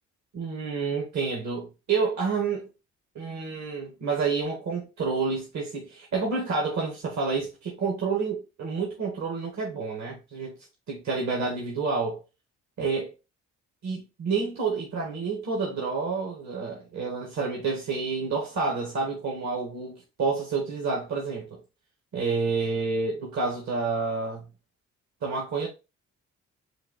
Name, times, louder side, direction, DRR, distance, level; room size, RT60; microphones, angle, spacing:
voice 1, 0.3-2.7 3.1-10.5 10.9-12.2 12.8-13.1 13.8-21.6 22.1-24.5 25.2-25.7, right 4 dB, 65° right, 1.6 m, -29 dB
4.5 x 2.6 x 3.9 m
cardioid pair, 90°, 30 cm